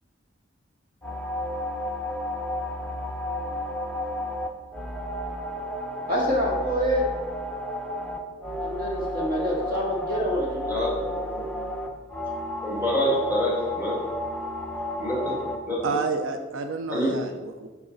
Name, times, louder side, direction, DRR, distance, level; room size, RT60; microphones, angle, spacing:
sound 1, 1.0-15.6, left 1 dB, 5° left, 0.6 m, -32 dB
voice 1, 6.1-7.1 8.6-10.7, equal, 50° right, -3 dB, 1.9 m, -26 dB
voice 2, 10.7-11.4 12.6-14.0 15.0-15.2 15.7-15.8 16.9-17.1, equal, 10° right, -5 dB, 2.1 m, -26 dB
voice 3, 15.8-17.7, right 4 dB, 85° right, 6 dB, 0.5 m, -29 dB
8.7 x 4.8 x 3.9 m, 1.3 s
head